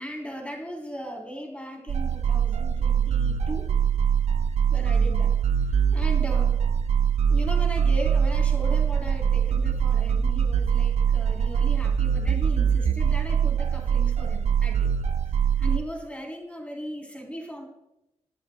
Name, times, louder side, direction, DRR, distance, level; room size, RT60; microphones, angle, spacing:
voice 1, 0.0-3.7 4.7-5.4 5.9-6.6 7.3-14.9 15.6-17.7, equal, 10° left, 1 dB, 3.3 m, -37 dB
sound 1, 1.9-15.8, right 7 dB, 70° right, 0.5 m, -23 dB
22.5 x 11.5 x 2.2 m, 0.87 s
cardioid pair, 85°, 12 cm